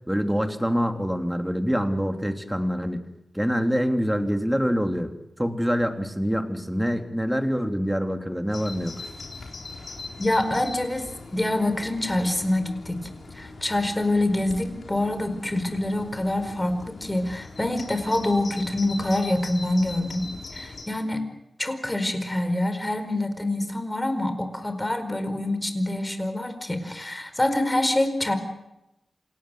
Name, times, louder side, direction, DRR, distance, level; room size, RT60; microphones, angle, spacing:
voice 1, 0.1-3.0 3.3-5.1 5.4-8.9, equal, 5° right, 5 dB, 3.1 m, -25 dB
Bird vocalization bird call bird song, 8.5-20.8, left 3 dB, 75° left, 4.1 m, -41 dB
voice 2, 10.2-13.1 13.3-21.2 21.6-28.3, left 1 dB, 20° left, 8 dB, 4.8 m, -26 dB
28.0 x 18.5 x 7.8 m, 0.88 s
cardioid pair, 55°, 0 cm